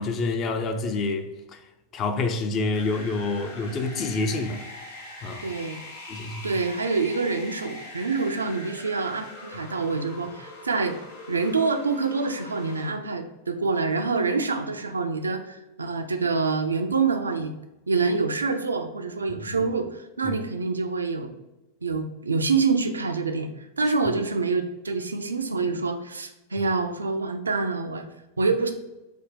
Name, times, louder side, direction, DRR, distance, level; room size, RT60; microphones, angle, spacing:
voice 1, 0.0-1.6 1.9-4.6 5.2-5.5 6.1-6.5 19.5-19.7 20.2-20.4, left 3 dB, 30° left, 0.4 m, -28 dB
Desert wind stereo, 2.7-12.9, left 2 dB, 55° left, 1.2 m, -42 dB
voice 2, 5.4-5.8 6.4-11.0 11.3-17.5 17.9-21.3 21.8-23.5 23.8-28.1 28.4-28.7, right 4 dB, 75° right, 0.3 m, -26 dB
3.3 x 2.1 x 3.8 m
figure-of-eight pair, 90°, 0 cm